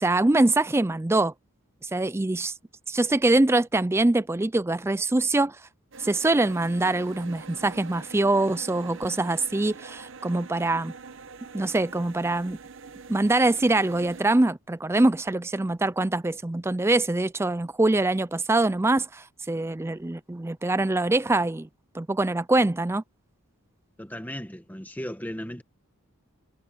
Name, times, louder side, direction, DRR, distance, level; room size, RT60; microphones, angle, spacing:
voice 1, 0.0-1.3 1.8-2.5 2.9-5.6 6.0-10.9 11.5-12.6 13.1-21.7 21.9-23.0, right 2 dB, 10° right, 0.4 m, -24 dB
sound 1, 5.9-14.2, right 4 dB, 60° right, 0.9 m, -44 dB
voice 2, 24.0-25.6, equal, 10° left, 1.3 m, -36 dB
head